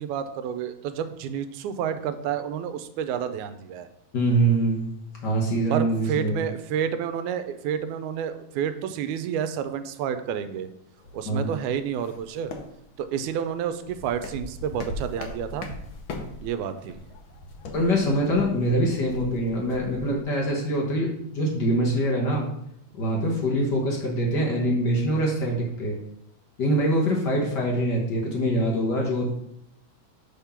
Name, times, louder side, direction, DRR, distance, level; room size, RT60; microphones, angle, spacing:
voice 1, 0.0-3.9 5.7-10.7 11.1-12.5 13.0-15.7 16.4-17.0, right 8 dB, 85° right, 10 dB, 2.0 m, -30 dB
voice 2, 4.1-4.9 5.2-6.4 11.3-11.5 17.7-22.5 22.9-26.0 26.6-29.4, right 1 dB, 60° left, -2 dB, 1.1 m, -24 dB
sound 1, 11.0-20.2, left 2 dB, 80° left, 1.1 m, -41 dB
6.5 x 3.6 x 5.7 m, 0.77 s
omnidirectional pair, 3.4 m